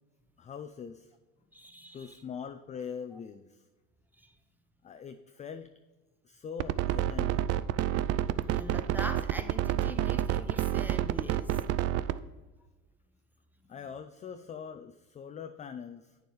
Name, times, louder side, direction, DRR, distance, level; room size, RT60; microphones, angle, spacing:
voice 1, 0.4-1.2 1.9-3.6 4.8-5.7 6.2-7.5 13.7-16.2, left 7 dB, 20° left, 9 dB, 0.4 m, -42 dB
voice 2, 1.5-2.2 3.1-3.2 4.2-4.3 8.5-11.5, right 1 dB, 5° right, 6 dB, 0.7 m, -42 dB
sound 1, 6.6-12.2, right 12 dB, 45° right, 0.4 m, -28 dB
8.7 x 7.0 x 3.2 m, 1.2 s
hypercardioid pair, 85°, 37 cm